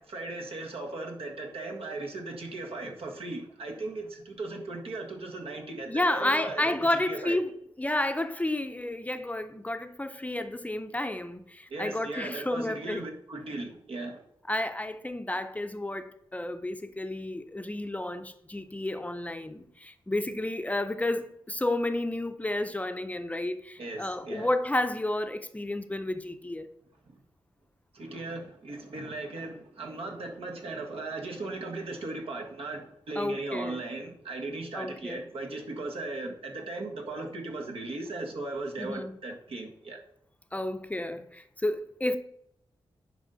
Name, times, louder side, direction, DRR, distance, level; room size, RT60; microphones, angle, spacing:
voice 1, 0.0-6.8 7.1-7.4 11.7-14.3 23.8-24.5 27.9-40.0, right 2 dB, 80° right, 1.7 m, -37 dB
voice 2, 5.9-7.5 7.8-13.0 14.5-26.7 33.2-33.8 34.7-35.2 38.8-39.2 40.5-42.2, left 1 dB, 15° left, 0.6 m, -31 dB
10.0 x 5.3 x 4.0 m
wide cardioid pair, 95°, 10 cm